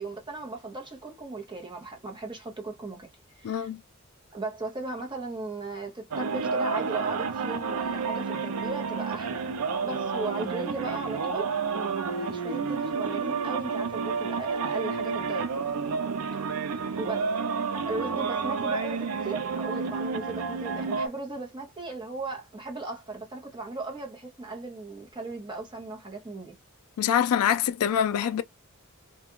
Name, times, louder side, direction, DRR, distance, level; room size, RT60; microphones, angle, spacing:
voice 1, 0.0-3.1 3.3-3.7 4.3-9.6 9.8-15.7 16.3-16.5 17.0-17.3 17.9-26.6, right 3 dB, 20° right, 0.8 m, -37 dB
voice 2, 3.4-3.8 27.0-28.4, left 9 dB, 80° left, 0.3 m, -25 dB
sound 1, 6.1-21.1, right 5 dB, 80° right, 0.4 m, -30 dB
2.4 x 2.2 x 2.9 m
head